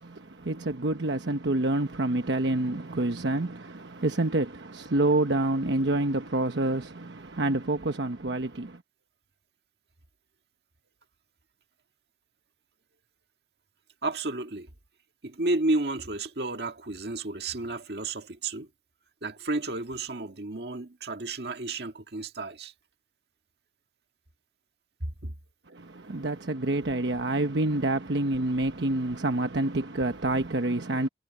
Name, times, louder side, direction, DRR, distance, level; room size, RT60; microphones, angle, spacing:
voice 1, 0.0-8.8 25.7-31.1, right 2 dB, 85° right, 1.1 m, -27 dB
voice 2, 14.0-14.7 15.2-18.7 19.2-22.7 25.2-25.3, right 2 dB, 65° right, 1.8 m, -31 dB
head